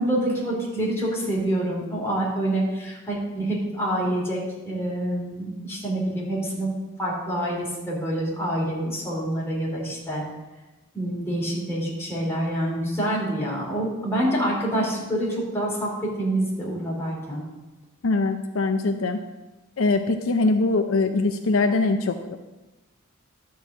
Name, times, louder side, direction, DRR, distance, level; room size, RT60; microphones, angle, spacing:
voice 1, 0.0-6.7 7.0-10.2 10.9-17.4, right 1 dB, 10° left, -5 dB, 3.2 m, -26 dB
voice 2, 18.0-19.2 19.8-22.4, left 3 dB, 70° left, 6 dB, 0.6 m, -22 dB
11.5 x 4.7 x 7.2 m, 1.1 s
head